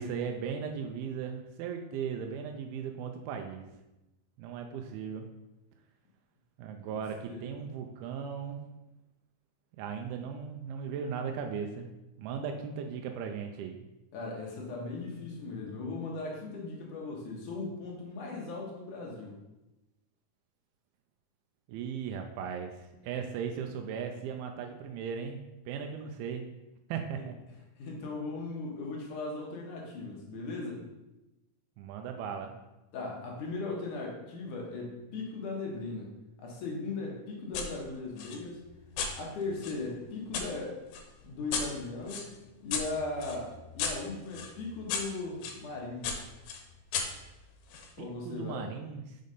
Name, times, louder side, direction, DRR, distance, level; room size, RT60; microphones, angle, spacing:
voice 1, 0.0-3.7 4.4-5.3 6.6-8.6 9.8-11.9 12.2-13.9 21.7-25.4 25.7-26.4 26.9-27.3 31.8-32.6 48.0-49.2, right 7 dB, 85° right, 4 dB, 2.5 m, -37 dB
voice 2, 14.1-19.4 27.8-30.8 32.9-36.1 36.4-38.6 39.2-40.8 41.2-42.3 42.6-46.2 48.0-48.7, left 3 dB, 70° left, -1 dB, 2.3 m, -38 dB
sound 1, 37.5-37.7 38.2-40.5 40.9-45.6 46.0-47.9, left 5 dB, 85° left, 2.8 m, -37 dB
6.4 x 4.0 x 5.2 m, 0.97 s
omnidirectional pair, 4.3 m